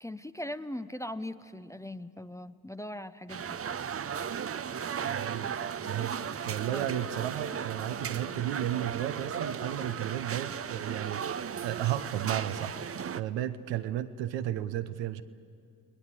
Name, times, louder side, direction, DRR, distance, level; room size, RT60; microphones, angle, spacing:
voice 1, 0.0-3.6 6.7-6.9, left 1 dB, 5° left, 12 dB, 0.7 m, -40 dB
sound 1, 3.3-13.2, right 7 dB, 30° right, 0.7 m, -36 dB
voice 2, 5.1-5.5 5.8-6.2 6.5-12.8 13.1-15.2, right 12 dB, 75° right, 10 dB, 1.0 m, -33 dB
29.5 x 20.5 x 7.6 m, 2.4 s
hypercardioid pair, 50°, 44 cm